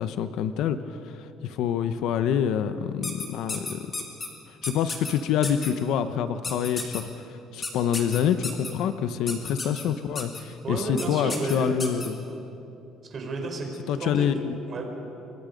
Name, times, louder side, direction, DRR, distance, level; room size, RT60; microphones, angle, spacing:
voice 1, 0.0-3.9 4.5-12.2 13.9-14.6, left 8 dB, 60° left, 11 dB, 0.9 m, -27 dB
sound 1, 3.0-4.3 4.6-5.1 5.4-5.7 6.4-7.0 7.6-8.7 9.3-9.8 10.1-10.4 11.0-11.1 11.3-12.1, left 3 dB, 20° left, 2.7 m, -32 dB
voice 2, 10.6-11.8 12.2-12.4 13.1-13.7 14.0-14.3 14.7-14.8, right 3 dB, 30° right, 2 dB, 4.3 m, -32 dB
29.5 x 24.0 x 5.3 m, 2.8 s
cardioid pair, 170°, 0 cm